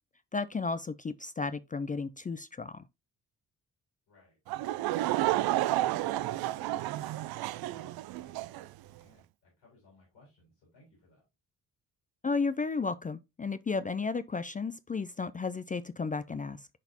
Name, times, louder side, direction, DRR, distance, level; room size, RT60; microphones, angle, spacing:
voice 1, 0.3-2.8 12.2-16.7, left 4 dB, 20° left, 0.4 m, -33 dB
voice 2, 4.1-4.4 5.2-5.6 6.1-11.2, left 2 dB, 80° left, 4.7 m, -61 dB
Laughter / Crowd, 4.5-8.7, right 15 dB, 55° right, 0.5 m, -31 dB
10.5 x 4.0 x 2.8 m
hypercardioid pair, 40°, 47 cm